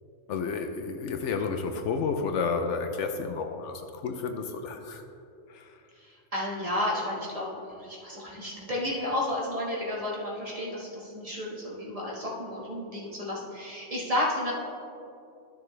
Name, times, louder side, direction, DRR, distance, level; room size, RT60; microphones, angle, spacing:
voice 1, 0.3-5.0 5.5-5.8, left 5 dB, 75° left, 6 dB, 0.9 m, -31 dB
voice 2, 6.0-14.5, left 1 dB, 30° right, -5 dB, 1.5 m, -32 dB
12.5 x 6.2 x 3.2 m, 2.6 s
omnidirectional pair, 1.3 m